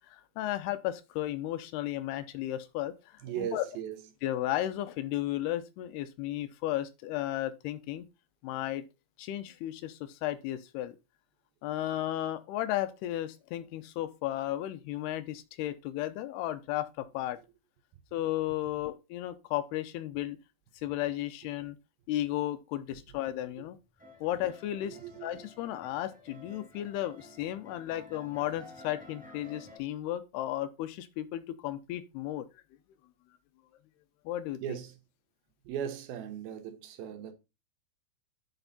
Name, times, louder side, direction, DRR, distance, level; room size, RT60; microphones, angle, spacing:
voice 1, 0.1-3.6 4.2-8.1 8.4-8.9 9.2-11.0 11.6-17.4 18.1-20.4 20.8-21.8 22.1-23.8 24.2-32.5 34.3-34.8, left 13 dB, 80° left, 2.8 m, -34 dB
voice 2, 3.2-4.0 24.9-25.3 34.6-34.9 35.7-37.3, right 9 dB, 70° right, 2.8 m, -37 dB
sound 1, 24.0-29.8, left 2 dB, ahead, 3.6 m, -52 dB
9.0 x 6.1 x 4.0 m
omnidirectional pair, 4.7 m